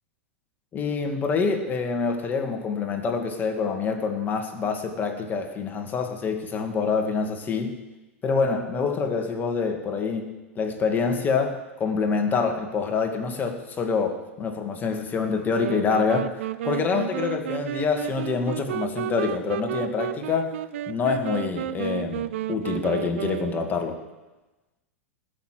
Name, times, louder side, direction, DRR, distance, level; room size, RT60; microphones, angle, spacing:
voice 1, 0.7-7.8 8.2-16.3 16.6-20.5 20.9-24.0, left 5 dB, 25° left, 4 dB, 2.2 m, -26 dB
sound 1, 15.5-24.0, right 12 dB, 60° right, 0.6 m, -32 dB
19.0 x 6.7 x 7.8 m, 1.1 s
figure-of-eight pair, 100°, 8 cm